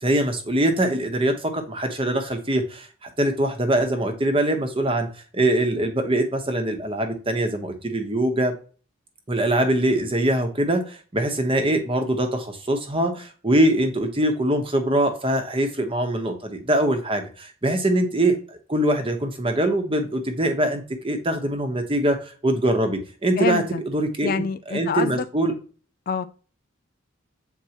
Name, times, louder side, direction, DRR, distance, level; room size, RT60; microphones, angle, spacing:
voice 1, 0.0-5.1 5.3-8.5 9.3-25.5, right 1 dB, 25° right, 1.1 m, -23 dB
voice 2, 23.4-23.8 24.2-25.2 26.1-26.3, left 6 dB, 45° left, 0.3 m, -26 dB
7.8 x 4.5 x 2.9 m
head